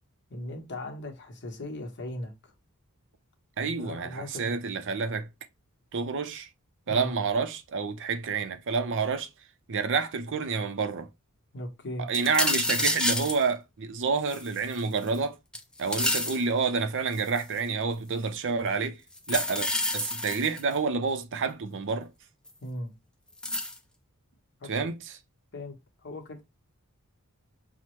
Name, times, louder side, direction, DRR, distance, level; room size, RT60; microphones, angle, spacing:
voice 1, 0.3-2.5 3.6-4.5 6.9-7.1 11.5-12.1 22.6-22.9 24.6-24.9 25.5-25.7 26.0-26.4, left 1 dB, 55° left, 1.0 m, -38 dB
voice 2, 3.6-5.3 5.9-6.5 6.9-9.3 9.7-11.1 12.1-15.4 15.8-19.0 19.3-22.1 24.7-25.0, right 5 dB, 60° right, 0.5 m, -29 dB
sound 1, 12.1-13.4 14.3-15.2 15.5-16.4 17.1-17.6 19.2-20.7 22.5-22.6 23.4-23.8, left 1 dB, 5° left, 0.5 m, -29 dB
5.7 x 2.1 x 3.0 m
head